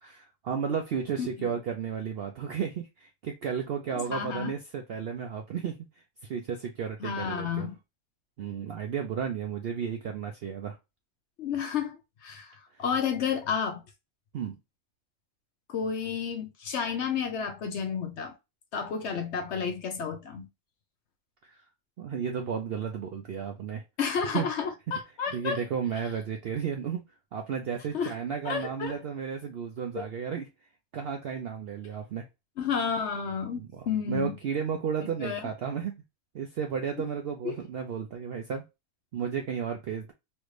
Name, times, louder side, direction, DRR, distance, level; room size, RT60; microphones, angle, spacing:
voice 1, 0.0-5.8 6.2-7.7 8.4-10.8 12.7-12.8 14.3-14.6 21.4-21.6 22.0-23.8 24.3-24.5 25.3-27.0 27.3-30.5 30.9-32.3 33.6-36.0 36.3-38.6 39.1-40.1, right 7 dB, 70° right, 0.6 m, -33 dB
voice 2, 4.0-4.5 7.0-7.8 11.4-13.8 15.7-18.3 18.7-20.5 24.0-25.6 27.9-28.1 28.4-29.0 29.9-30.1 32.6-34.4 35.2-35.5 37.4-37.5, left 6 dB, 65° left, 0.8 m, -31 dB
3.1 x 2.5 x 3.1 m
omnidirectional pair, 1.5 m